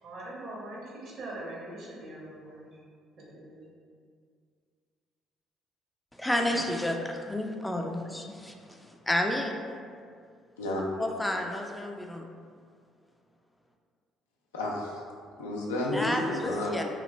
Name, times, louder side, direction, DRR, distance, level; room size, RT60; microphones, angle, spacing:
voice 1, 0.0-2.6 3.2-3.6, right 1 dB, 60° right, -5 dB, 1.0 m, -42 dB
voice 2, 6.2-9.6 11.0-12.3 15.9-16.8, left 1 dB, 10° left, 2 dB, 0.4 m, -31 dB
voice 3, 10.6-10.9 14.5-15.0 15.4-16.8, left 1 dB, 90° left, -2 dB, 0.4 m, -31 dB
3.1 x 2.4 x 3.1 m, 2.1 s
hypercardioid pair, 55°, 0 cm